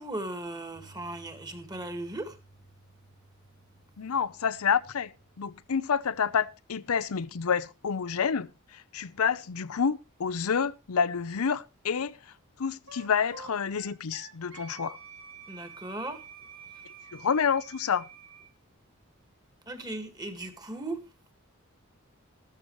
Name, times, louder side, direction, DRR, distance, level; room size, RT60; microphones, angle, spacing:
voice 1, 0.0-2.4 15.5-16.2 19.7-21.0, right 2 dB, 20° right, 1.7 m, -37 dB
Piano, 0.8-8.9, right 2 dB, 25° left, 1.3 m, -59 dB
voice 2, 4.0-5.1 5.4-12.2 12.6-15.0 17.1-18.0, left 6 dB, 85° left, 0.6 m, -28 dB
Wind instrument woodwind instrument, 12.9-18.5, right 5 dB, 60° right, 1.5 m, -48 dB
13.5 x 13.0 x 3.1 m
head